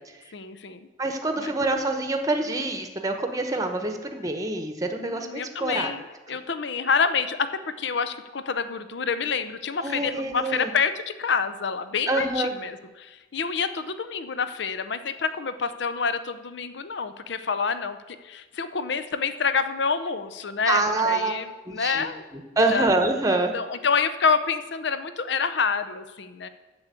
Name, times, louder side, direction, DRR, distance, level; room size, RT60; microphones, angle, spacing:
voice 1, 0.3-0.8 1.4-1.5 5.0-22.2 22.7-22.9 23.5-26.5, left 5 dB, 60° left, 12 dB, 0.6 m, -27 dB
voice 2, 1.0-5.9 9.8-10.7 12.1-12.5 20.7-21.3 21.7-22.1 22.3-23.5, right 2 dB, 20° right, 5 dB, 1.0 m, -26 dB
8.0 x 7.0 x 8.2 m, 1.2 s
head